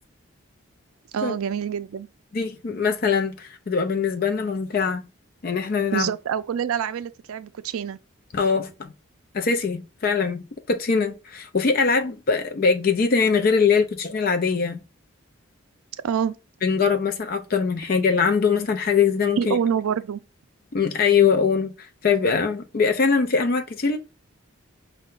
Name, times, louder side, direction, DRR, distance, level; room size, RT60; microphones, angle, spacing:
voice 1, 1.1-2.1 5.9-8.0 16.0-16.4 19.4-20.2, right 8 dB, 90° right, 0.4 m, -26 dB
voice 2, 2.3-5.0 5.4-6.1 8.3-8.9 9.3-14.8 16.6-19.6 20.7-24.0, left 5 dB, 45° left, 0.4 m, -22 dB
5.3 x 2.2 x 3.7 m
head